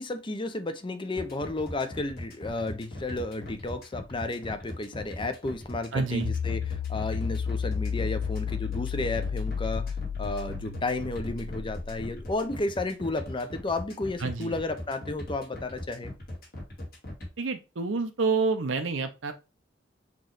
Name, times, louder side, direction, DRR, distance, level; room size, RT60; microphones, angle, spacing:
voice 1, 0.0-16.1, left 2 dB, 25° left, 0.6 m, -32 dB
sound 1, 1.2-17.3, left 1 dB, 50° left, 1.9 m, -39 dB
voice 2, 5.9-6.3 14.2-14.5 17.4-19.3, right 4 dB, 70° right, 0.7 m, -28 dB
sound 2, 6.3-12.5, left 6 dB, 70° left, 0.4 m, -32 dB
5.9 x 3.1 x 2.5 m
head